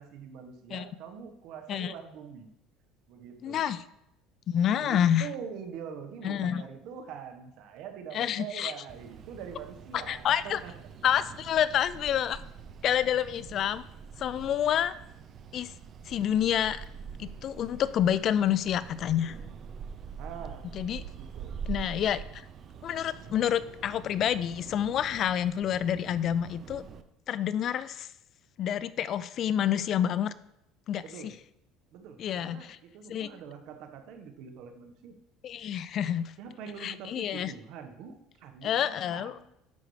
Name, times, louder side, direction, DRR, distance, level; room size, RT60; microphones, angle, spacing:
voice 1, 0.0-2.5 3.1-3.6 4.8-10.7 20.2-20.6 21.1-21.6 24.9-25.0 31.0-31.3 31.9-35.1 36.4-39.5, right 7 dB, 65° right, 6 dB, 1.3 m, -44 dB
voice 2, 3.4-3.8 4.5-5.3 6.2-6.6 8.1-8.7 9.9-10.6 11.0-12.4 12.8-13.8 14.2-14.9 15.5-15.7 16.1-16.8 17.2-19.4 20.7-21.0 21.7-22.4 22.8-26.8 27.3-28.1 28.6-30.3 30.9-31.3 32.2-32.8 33.1-33.3 35.4-36.3 36.8-37.5 38.6-39.5, left 10 dB, 45° left, 16 dB, 0.4 m, -28 dB
sound 1, 8.9-27.0, right 6 dB, 40° right, 0.6 m, -45 dB
10.5 x 6.8 x 3.3 m, 0.80 s
cardioid pair, 125°, 0 cm